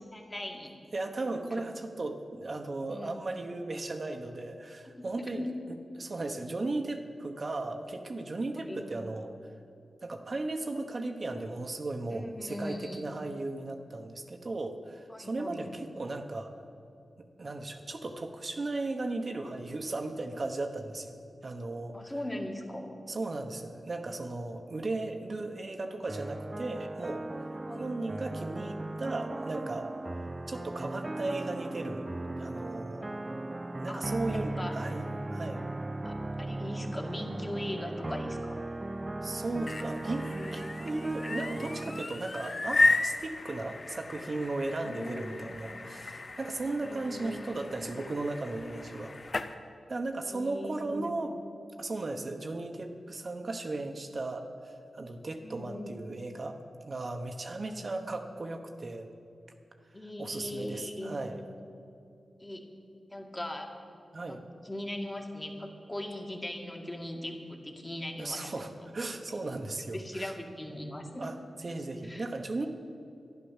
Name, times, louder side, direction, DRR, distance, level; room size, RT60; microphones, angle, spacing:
voice 1, 0.1-0.8 1.5-1.6 2.9-3.2 5.4-5.5 8.6-8.9 12.1-13.0 15.1-15.7 21.9-22.9 27.7-27.9 33.9-34.0 34.3-34.7 36.0-38.7 44.8-45.6 46.8-47.8 50.2-51.1 55.4-55.9 57.6-58.0 59.9-61.2 62.4-62.7 63.1-63.7 64.3-68.5 69.9-71.3 72.0-72.3, left 1 dB, 20° left, 2 dB, 1.9 m, -39 dB
voice 2, 0.9-5.5 5.9-9.3 10.0-16.5 17.2-21.2 21.4-22.1 23.1-27.2 27.7-29.9 30.5-32.1 32.4-33.1 33.8-35.6 39.2-49.1 49.9-51.3 51.8-56.6 56.8-59.1 60.2-61.4 64.1-64.4 68.2-70.3 71.2-72.7, right 2 dB, 50° right, 4 dB, 1.1 m, -36 dB
sound 1, 26.1-42.0, right 2 dB, 25° right, 0.3 m, -37 dB
sound 2, 39.4-49.5, left 3 dB, 45° left, 0.7 m, -34 dB
12.0 x 10.5 x 7.3 m, 2.6 s
cardioid pair, 60°, 0 cm